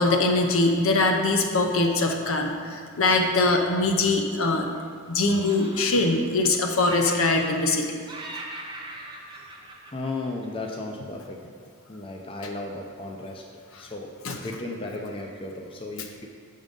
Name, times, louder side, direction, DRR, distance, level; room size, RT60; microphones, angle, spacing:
voice 1, 0.0-4.7 5.1-7.9 14.2-14.4, left 2 dB, 65° left, 3 dB, 0.7 m, -22 dB
Laughter, 3.8-4.9 5.2-6.5 6.8-7.8 8.1-10.7, right 2 dB, 20° right, 0.7 m, -40 dB
voice 2, 9.9-11.4 11.9-13.4 13.8-16.3, left 2 dB, 25° left, 0 dB, 0.5 m, -35 dB
7.3 x 3.7 x 5.2 m, 2.1 s
head